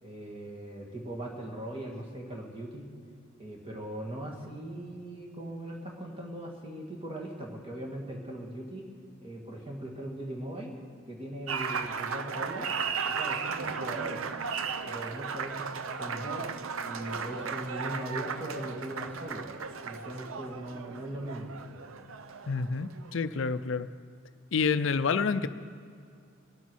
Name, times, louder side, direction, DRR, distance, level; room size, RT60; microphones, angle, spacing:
voice 1, 0.0-2.8 3.4-8.9 9.2-10.8 11.1-12.7 13.1-14.2 14.8-15.7 16.0-16.5 16.8-19.5 19.8-21.5, right 1 dB, 25° right, -1 dB, 1.9 m, -39 dB
Applause, 11.5-23.2, right 5 dB, 85° right, 0.7 m, -35 dB
voice 2, 22.5-23.9 24.5-25.5, left 5 dB, 65° left, 12 dB, 0.5 m, -28 dB
22.0 x 8.3 x 6.3 m, 2.3 s
head